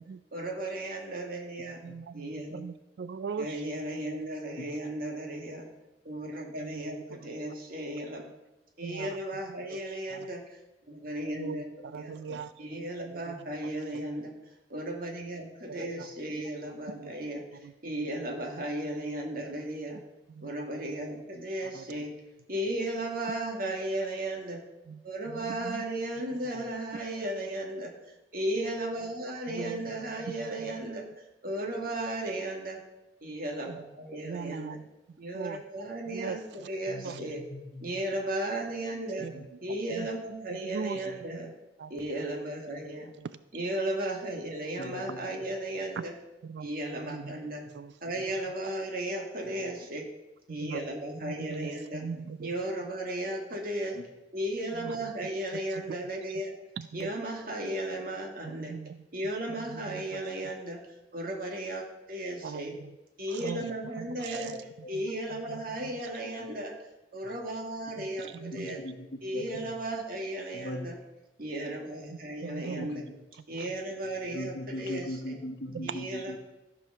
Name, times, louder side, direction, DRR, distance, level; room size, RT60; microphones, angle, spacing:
voice 1, 0.3-1.8 2.1-2.6 3.4-5.7 6.0-8.2 8.8-10.6 10.9-11.7 11.9-12.2 12.6-14.4 14.7-20.0 20.4-22.2 22.5-24.6 25.0-31.0 31.4-32.8 33.2-34.8 35.2-37.4 37.8-39.3 39.6-41.5 41.9-43.1 43.5-46.1 46.6-47.7 48.0-50.0 50.5-52.0 52.4-54.0 54.3-56.5 56.9-58.8 59.1-60.8 61.1-62.7 63.2-64.6 64.9-66.8 67.1-68.8 69.2-71.0 71.4-73.1 73.5-75.4 75.8-76.4, right 1 dB, 55° right, 1 dB, 2.0 m, -35 dB
voice 2, 1.8-3.6 6.6-7.6 8.8-9.2 9.7-10.3 11.4-12.5 13.0-13.3 13.9-14.0 15.7-16.1 16.9-17.1 17.6-17.7 20.3-20.5 21.6-21.9 24.9-25.8 29.5-29.9 30.2-30.7 33.6-33.8 34.2-34.9 35.3-36.7 37.0-37.2 39.2-39.5 39.9-40.1 40.6-41.1 41.3-41.5 41.8-41.9 43.2-43.3 46.0-46.1 46.4-46.7 47.0-47.4 47.7-48.0 50.5-50.8 51.2-52.5 54.7-55.0 55.5-56.0 56.8-57.1 58.4-59.1 59.6-60.2 62.4-62.9 63.3-63.6 64.0-64.6 64.9-66.1 68.0-68.8 69.5-69.7 72.1-72.9 73.3-73.8 75.7-75.9, right 6 dB, 70° right, 14 dB, 0.3 m, -41 dB
voice 3, 36.9-38.0 39.2-39.4 41.1-41.2 44.8-45.2 49.4-49.5 53.9-54.0 63.6-63.7 64.3-64.5 66.4-66.5 68.6-69.7 70.5-70.9 72.8-73.2 74.3-76.4, left 1 dB, 70° left, 7 dB, 1.0 m, -40 dB
13.5 x 5.0 x 6.6 m, 1.0 s
head